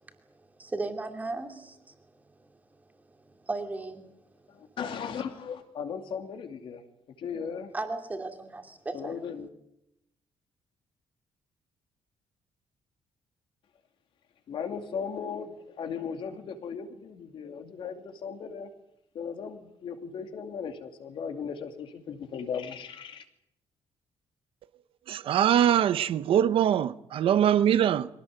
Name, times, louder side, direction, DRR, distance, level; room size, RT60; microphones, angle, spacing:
voice 1, 0.0-4.7 7.7-9.2, right 3 dB, 15° right, 2.7 m, -38 dB
voice 2, 4.5-6.8 7.2-7.7 8.9-9.5 14.5-18.7 19.1-23.2, left 6 dB, 50° left, 2.6 m, -37 dB
voice 3, 25.1-28.1, right 10 dB, 55° right, 0.8 m, -23 dB
23.5 x 18.0 x 9.4 m
cardioid pair, 180°, 11 cm